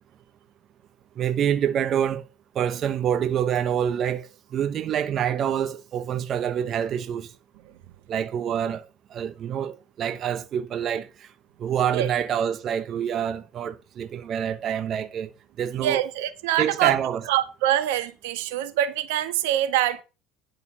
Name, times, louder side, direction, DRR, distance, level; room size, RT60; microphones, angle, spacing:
voice 1, 1.2-2.3 2.5-7.3 8.1-8.8 9.1-11.1 11.6-15.3 15.6-16.0 16.6-17.3, right 9 dB, 45° right, 1.1 m, -26 dB
voice 2, 15.8-17.0 17.3-20.0, right 12 dB, 80° right, 1.5 m, -24 dB
11.0 x 6.6 x 5.5 m
supercardioid pair, 105°, 0 cm